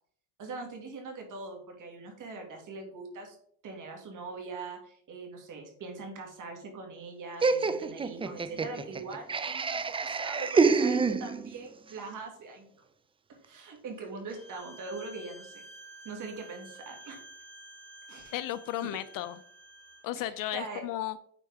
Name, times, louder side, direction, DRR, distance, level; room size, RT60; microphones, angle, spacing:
voice 1, 0.4-3.4 3.6-12.9 13.3-15.6 16.0-17.2 18.1-18.3 18.8-19.0 20.2-20.8, right 3 dB, 60° right, 3 dB, 2.3 m, -42 dB
Laughter, 7.4-11.7, right 4 dB, 15° right, 0.3 m, -27 dB
Bowed string instrument, 14.3-20.1, right 2 dB, 25° left, 2.1 m, -51 dB
voice 2, 18.3-19.4 20.0-21.2, left 13 dB, 65° left, 14 dB, 0.5 m, -34 dB
8.9 x 4.4 x 3.5 m, 0.64 s
cardioid pair, 105°, 36 cm